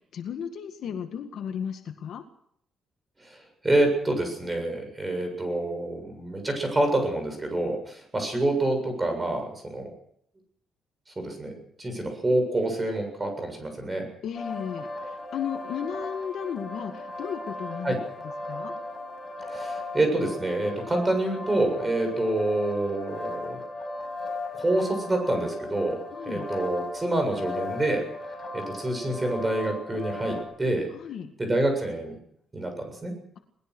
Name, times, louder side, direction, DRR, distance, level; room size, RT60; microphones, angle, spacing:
voice 1, 0.1-2.2 14.2-17.9 18.4-18.7 26.1-26.5 30.9-31.3, left 8 dB, 60° left, 6 dB, 1.9 m, -34 dB
voice 2, 3.6-9.9 11.2-11.5 11.8-14.1 17.8-18.0 19.5-23.6 24.5-26.0 26.3-28.0 28.5-30.9 31.4-32.1 32.5-33.1, right 1 dB, 15° right, 5 dB, 7.3 m, -27 dB
sound 1, 14.3-30.4, left 2 dB, 20° left, 6.3 m, -37 dB
22.0 x 20.0 x 6.3 m, 0.69 s
cardioid pair, 165°, 0 cm